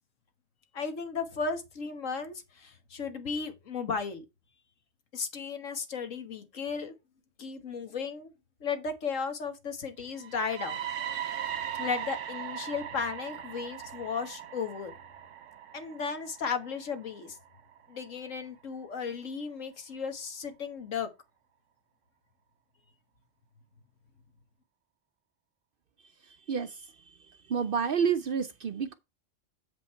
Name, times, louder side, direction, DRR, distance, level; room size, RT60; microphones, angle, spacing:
voice 1, 0.7-4.2 5.1-6.9 7.4-8.3 8.6-10.8 11.8-14.9 15.7-17.4 17.9-21.1, left 5 dB, 80° left, 1.8 m, -35 dB
sound 1, 10.1-18.1, right 10 dB, 75° right, 1.1 m, -39 dB
voice 2, 27.5-28.9, right 6 dB, 55° right, 0.6 m, -28 dB
7.7 x 5.3 x 4.4 m
omnidirectional pair, 1.3 m